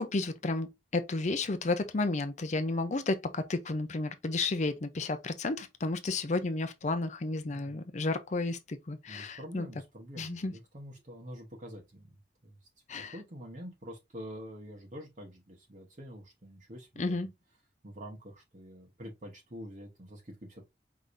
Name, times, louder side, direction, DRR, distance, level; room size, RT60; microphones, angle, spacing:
voice 1, 0.0-9.7 10.2-10.5 12.9-13.2 17.0-17.3, left 2 dB, 40° left, 0.5 m, -32 dB
voice 2, 7.5-7.8 9.1-12.6 13.1-17.3 17.8-20.6, equal, 45° right, 1.2 m, -46 dB
4.8 x 3.8 x 2.6 m
head